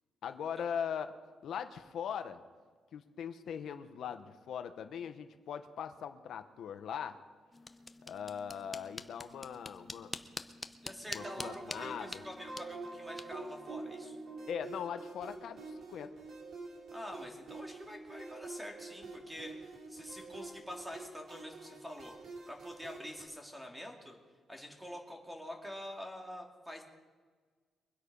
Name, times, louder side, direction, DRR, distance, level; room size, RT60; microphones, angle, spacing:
voice 1, 0.2-1.1 1.4-2.4 2.9-7.2 8.1-10.1 11.1-12.2 14.5-16.1, left 8 dB, 70° left, 8 dB, 1.0 m, -40 dB
sound 1, 7.5-14.5, left 3 dB, 20° left, 0.7 m, -47 dB
voice 2, 10.8-14.2 16.9-24.2 24.5-26.8, left 1 dB, 5° right, 1 dB, 2.4 m, -46 dB
sound 2, 11.2-23.2, right 3 dB, 55° right, 3.3 m, -47 dB
23.5 x 8.5 x 5.4 m, 1.5 s
cardioid pair, 130°, 0 cm